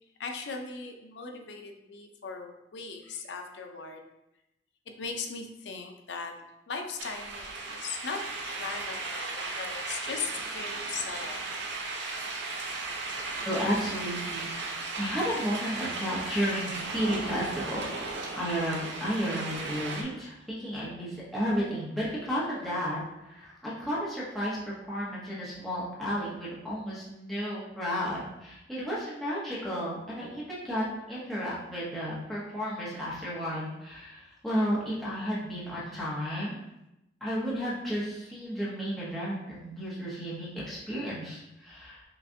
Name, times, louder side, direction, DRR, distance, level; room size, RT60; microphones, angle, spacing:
voice 1, 0.2-4.0 4.9-6.3 6.7-8.2 8.6-11.4, left 5 dB, 75° left, 4 dB, 0.5 m, -38 dB
sound 1, 7.0-20.0, right 3 dB, 75° right, 0.6 m, -36 dB
voice 2, 13.4-14.5 15.0-17.8 18.4-24.6 24.9-30.8 31.1-36.6 37.2-42.0, equal, ahead, -9 dB, 0.9 m, -32 dB
5.8 x 2.4 x 2.6 m, 0.91 s
head